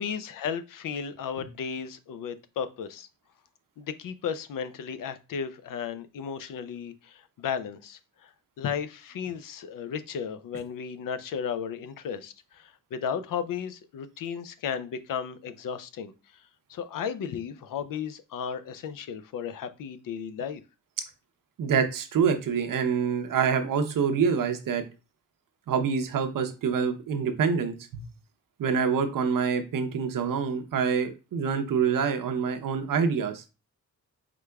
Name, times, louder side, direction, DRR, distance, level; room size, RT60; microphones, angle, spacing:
voice 1, 0.0-3.1 3.8-8.3 8.6-16.1 16.7-20.6, left 7 dB, 85° left, 12 dB, 0.5 m, -34 dB
voice 2, 21.6-24.8 25.7-28.0 28.6-33.4, right 6 dB, 80° right, 8 dB, 0.8 m, -26 dB
4.9 x 3.5 x 2.2 m, 0.30 s
cardioid pair, 95°, 32 cm